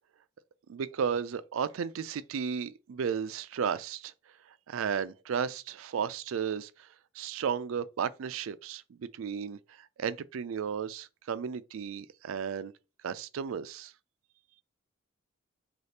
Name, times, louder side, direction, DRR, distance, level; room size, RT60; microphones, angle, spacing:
voice 1, 0.7-4.1 4.7-6.7 7.2-9.6 10.0-12.7 13.0-13.9, right 7 dB, 80° right, 0.4 m, -34 dB
6.4 x 2.4 x 2.9 m
head